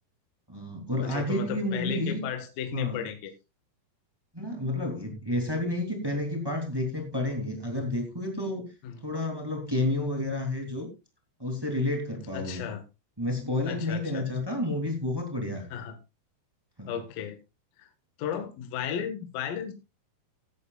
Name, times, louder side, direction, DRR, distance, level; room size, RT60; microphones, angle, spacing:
voice 1, 0.5-2.2 2.7-3.1 4.3-8.7 9.0-10.9 11.4-12.7 13.2-15.6 16.8-16.9, left 1 dB, 10° right, 3 dB, 1.4 m, -30 dB
voice 2, 1.0-3.3 8.8-9.0 12.3-12.8 13.7-14.3 15.7-16.0 16.9-17.4 17.8-17.9 18.2-19.7, left 8 dB, 60° left, 7 dB, 2.8 m, -34 dB
16.0 x 11.0 x 2.4 m, 0.26 s
omnidirectional pair, 5.5 m